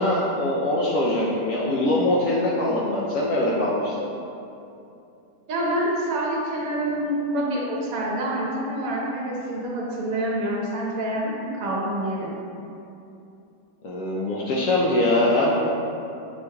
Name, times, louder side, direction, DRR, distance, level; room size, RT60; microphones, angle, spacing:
voice 1, 0.0-4.1 13.8-15.5, left 1 dB, 70° left, -5 dB, 0.8 m, -22 dB
voice 2, 5.5-12.4, right 1 dB, 65° right, -4 dB, 1.1 m, -27 dB
6.7 x 3.1 x 2.2 m, 2.7 s
omnidirectional pair, 1.8 m